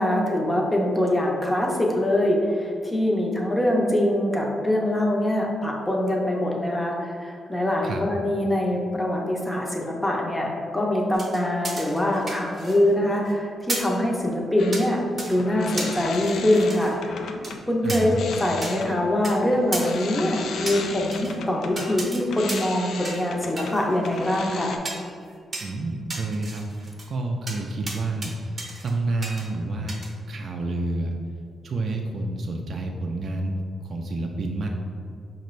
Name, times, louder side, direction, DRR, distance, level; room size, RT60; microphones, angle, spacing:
voice 1, 0.0-17.1 17.7-24.8, left 1 dB, 15° left, -1 dB, 0.6 m, -23 dB
sound 1, 11.1-12.9 13.2-13.3 13.7-14.0 14.7-14.9 15.2-15.4 15.8-16.9 17.4-17.5 17.9-18.0 18.6-18.7 19.2-19.3 19.7-19.9 20.7-21.3 21.8-22.2 22.5-22.8 23.0-23.3 23.6-24.4 24.8-25.1 25.5-25.7 26.1-27.1 27.5-27.6 27.9-28.3 28.6-28.9 29.2-29.5 29.9-30.1, right 2 dB, 25° right, 0.7 m, -34 dB
sound 2, 14.6-17.6 18.0-24.8, left 5 dB, 75° left, 0.3 m, -36 dB
voice 2, 17.8-18.2 25.6-30.0 30.3-31.1 31.6-34.7, right 2 dB, 50° right, 1 dB, 0.3 m, -29 dB
5.2 x 2.5 x 3.1 m, 2.3 s
cardioid pair, 135°, 0 cm